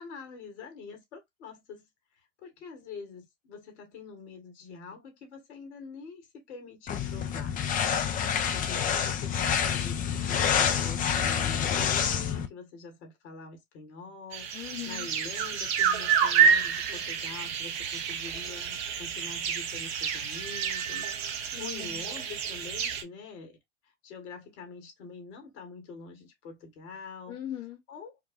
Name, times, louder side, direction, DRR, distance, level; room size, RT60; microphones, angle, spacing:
voice 1, 0.0-1.8 2.1-7.6 8.5-23.6 23.8-27.4 27.9-28.2, left 4 dB, 60° left, 1.7 m, -45 dB
sound 1, 6.9-12.5, left 8 dB, 20° left, 0.5 m, -27 dB
voice 2, 7.8-8.5 14.5-15.1 21.5-22.0 27.3-27.8, left 12 dB, 40° left, 0.9 m, -41 dB
sound 2, 14.3-23.0, right 7 dB, 55° right, 0.9 m, -29 dB
4.6 x 2.3 x 2.5 m
figure-of-eight pair, 90°, 37 cm